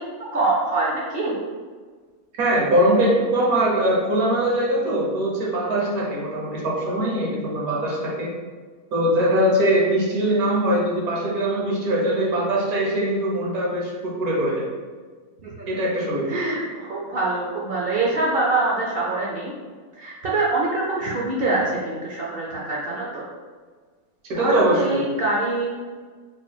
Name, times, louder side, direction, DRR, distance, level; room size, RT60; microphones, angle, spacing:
voice 1, 0.3-1.3 15.4-15.7 16.3-19.5 19.9-23.2 24.3-25.7, right 2 dB, 65° right, -5 dB, 0.6 m, -24 dB
voice 2, 2.4-8.3 8.9-14.6 15.7-16.4 24.3-25.0, right 1 dB, 80° right, -4 dB, 1.4 m, -22 dB
4.3 x 2.9 x 2.3 m, 1.5 s
omnidirectional pair, 1.5 m